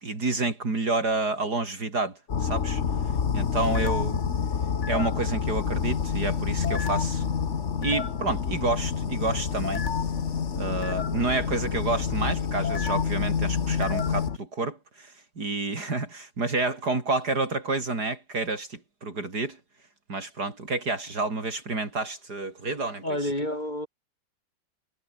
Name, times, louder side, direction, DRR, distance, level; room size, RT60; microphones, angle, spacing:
voice 1, 0.0-2.8 3.3-4.2 4.9-7.2 7.8-9.8 10.6-19.6 20.1-23.0, right 3 dB, 60° right, 4.5 m, -29 dB
sound 1, 2.3-14.4, left 6 dB, 45° left, 1.5 m, -28 dB
voice 2, 23.0-23.9, left 1 dB, 25° left, 6.2 m, -30 dB
omnidirectional pair, 2.0 m